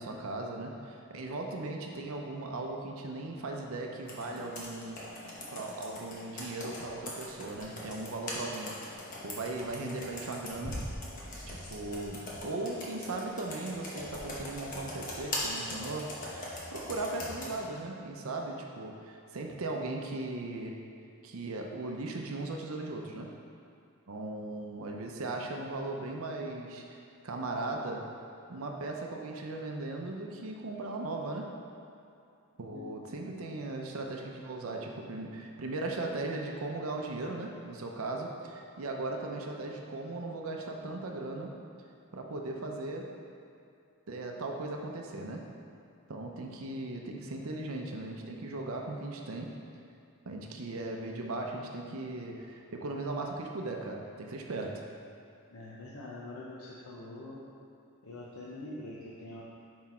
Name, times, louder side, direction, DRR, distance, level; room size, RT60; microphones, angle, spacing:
voice 1, 0.0-8.7 9.2-10.8 11.5-20.8 21.2-23.3 24.1-27.0 27.2-28.1 28.5-31.5 32.6-41.5 42.1-43.1 44.1-45.5 46.1-49.5 50.3-54.9, right 2 dB, 70° right, 1 dB, 0.6 m, -38 dB
Computer keyboard, 4.1-17.6, left 1 dB, 35° left, 1.0 m, -41 dB
voice 2, 32.6-33.1 55.5-57.4 58.0-59.4, left 2 dB, 85° left, -6 dB, 0.7 m, -44 dB
6.0 x 4.7 x 4.3 m, 2.5 s
head